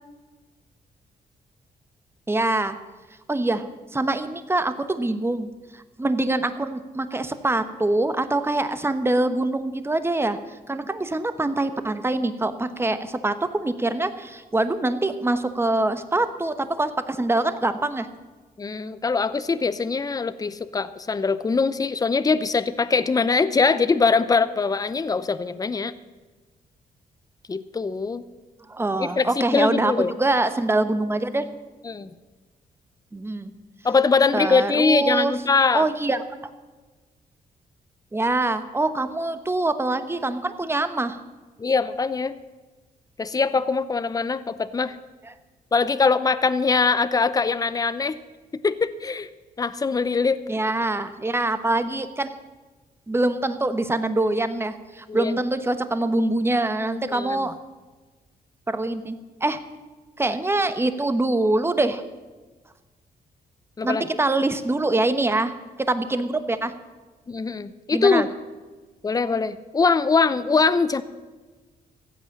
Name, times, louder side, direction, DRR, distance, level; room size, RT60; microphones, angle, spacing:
voice 1, 2.3-2.8 3.3-10.4 10.7-18.1 28.7-31.5 33.1-33.5 34.3-35.3 35.7-36.2 38.1-41.2 50.5-52.4 53.1-57.6 58.7-59.6 60.2-62.0 63.8-65.5 65.8-66.7 67.9-68.3, right 2 dB, 15° right, 11 dB, 1.1 m, -24 dB
voice 2, 18.6-25.9 27.5-28.2 29.0-30.1 31.8-32.1 33.8-35.8 41.6-42.4 43.2-45.0 45.7-48.2 48.6-49.3 49.6-50.4 55.1-55.3 57.1-57.4 63.8-64.1 67.3-68.3 69.0-71.0, left 4 dB, 25° left, 14 dB, 0.6 m, -22 dB
15.5 x 8.4 x 7.3 m, 1.3 s
cardioid pair, 90°, 15 cm